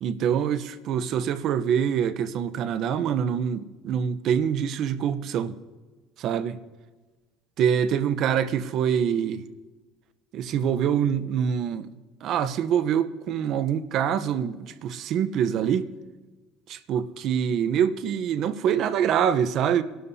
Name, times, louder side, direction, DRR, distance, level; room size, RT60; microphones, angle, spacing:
voice 1, 0.0-5.5 6.2-6.6 7.6-9.4 10.3-11.9 12.2-15.9 16.7-19.8, right 8 dB, 55° right, 0.8 m, -25 dB
25.5 x 12.5 x 2.8 m
supercardioid pair, 105°, 0 cm